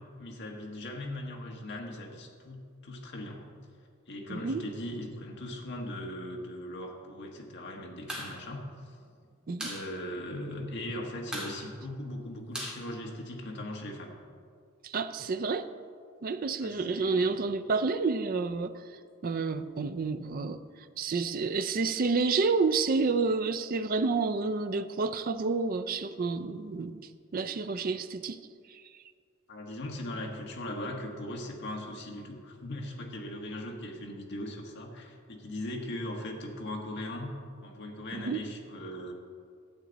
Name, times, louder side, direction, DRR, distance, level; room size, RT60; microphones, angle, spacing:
voice 1, 0.0-3.4 4.1-8.9 9.6-14.1 16.6-17.4 29.5-37.3 37.6-39.1, left 1 dB, 60° left, 1 dB, 1.4 m, -39 dB
voice 2, 4.3-4.6 9.5-9.7 14.8-15.7 16.2-18.7 19.2-20.6 21.0-27.0 27.3-28.4 28.7-28.8 38.1-38.4, right 4 dB, 45° right, 10 dB, 0.4 m, -29 dB
Resonant light switch on and off, 8.1-8.3 8.6-8.7 9.0-9.8 10.1-10.2 10.5-10.9 11.2-13.6, right 1 dB, 5° right, 2.1 m, -39 dB
12.0 x 8.3 x 4.0 m, 2.1 s
head